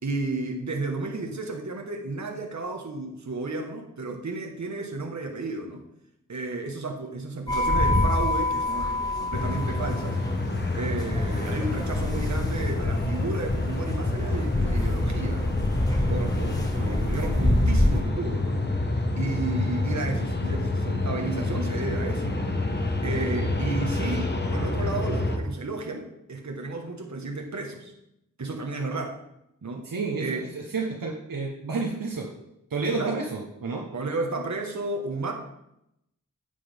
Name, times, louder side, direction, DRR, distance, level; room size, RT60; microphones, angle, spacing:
voice 1, 0.0-5.8 6.3-10.2 10.8-15.6 16.1-18.6 19.2-22.5 23.0-27.9 28.4-29.2 29.6-29.9 30.2-30.4 33.0-33.2 33.9-35.3, right 3 dB, 60° right, 1 dB, 1.4 m, -33 dB
sound 1, 7.5-18.0, left 1 dB, 10° left, 1.6 m, -27 dB
sound 2, 9.3-25.4, left 2 dB, 30° left, 1.3 m, -28 dB
voice 2, 29.8-32.3 32.7-33.9, right 4 dB, 85° right, -1 dB, 1.2 m, -30 dB
9.6 x 8.5 x 3.5 m, 0.82 s
wide cardioid pair, 65°, 33 cm